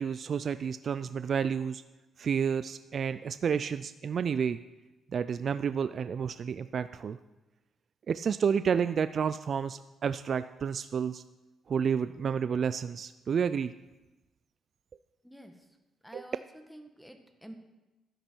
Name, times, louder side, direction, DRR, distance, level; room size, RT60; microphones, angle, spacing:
voice 1, 0.0-1.8 2.2-4.6 5.1-7.2 8.1-11.2 11.7-13.7 16.1-16.2, right 7 dB, 50° right, 13 dB, 0.3 m, -30 dB
voice 2, 15.2-15.8 16.0-17.6, equal, ahead, 6 dB, 1.3 m, -50 dB
12.0 x 9.9 x 4.5 m, 1.1 s
cardioid pair, 90°, 0 cm